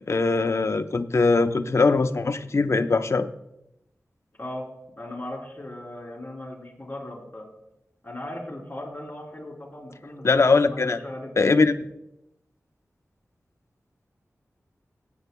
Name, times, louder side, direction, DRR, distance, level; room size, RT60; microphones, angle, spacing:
voice 1, 0.1-3.3 10.2-11.0 11.4-11.8, left 3 dB, 55° left, 8 dB, 0.7 m, -21 dB
voice 2, 5.0-7.5 8.0-11.6, left 1 dB, 30° left, -2 dB, 3.5 m, -38 dB
20.5 x 9.1 x 2.3 m, 0.84 s
wide cardioid pair, 55°, 6 cm